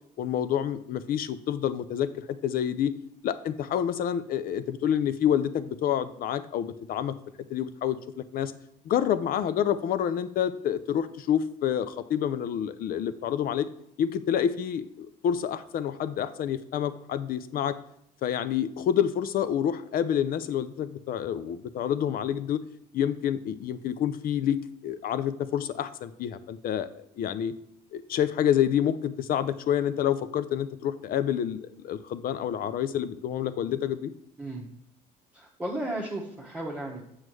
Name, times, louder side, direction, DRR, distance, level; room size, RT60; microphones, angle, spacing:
voice 1, 0.2-2.9 3.2-7.2 7.5-8.5 8.9-13.7 14.0-17.7 18.2-22.6 22.9-27.5 27.9-34.1, left 9 dB, 60° left, 13 dB, 0.5 m, -28 dB
voice 2, 35.3-37.0, right 1 dB, 5° right, -5 dB, 1.2 m, -34 dB
7.3 x 6.3 x 3.2 m, 0.74 s
cardioid pair, 110°, 17 cm